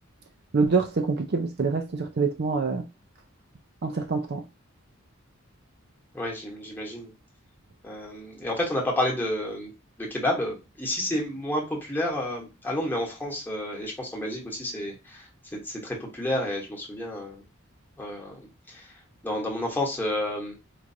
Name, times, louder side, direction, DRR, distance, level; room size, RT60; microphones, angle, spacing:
voice 1, 0.5-2.8 3.8-4.4, right 4 dB, 50° right, 0.5 m, -25 dB
voice 2, 6.1-7.1 7.8-9.7 10.0-17.4 18.0-18.9 19.2-20.5, left 1 dB, 10° left, 1.1 m, -30 dB
4.6 x 2.5 x 2.7 m
head